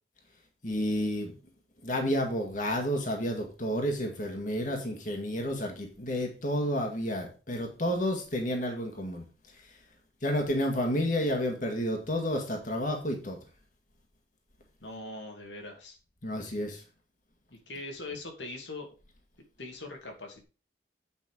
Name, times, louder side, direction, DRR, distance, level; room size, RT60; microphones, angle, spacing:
voice 1, 0.6-1.3 1.8-9.2 9.6-9.8 10.2-13.4 16.2-16.8, equal, 45° left, 2 dB, 2.0 m, -30 dB
voice 2, 14.8-16.0 17.5-18.9 19.6-20.4, left 2 dB, 90° left, 2 dB, 2.6 m, -41 dB
8.7 x 5.9 x 5.0 m, 0.33 s
head